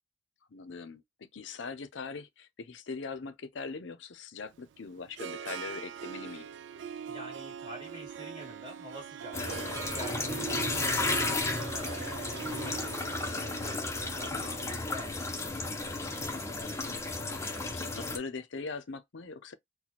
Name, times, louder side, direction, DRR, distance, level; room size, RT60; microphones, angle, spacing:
voice 1, 0.5-6.5 14.2-14.7 16.7-17.0 17.3-19.5, left 4 dB, 70° left, 0.6 m, -42 dB
Harp, 4.5-16.6, right 7 dB, 65° right, 0.3 m, -42 dB
voice 2, 7.1-13.1 13.6-15.3, right 1 dB, 25° right, 2.3 m, -48 dB
sound 1, 9.3-18.2, left 2 dB, 15° left, 0.6 m, -33 dB
4.2 x 2.2 x 2.8 m
head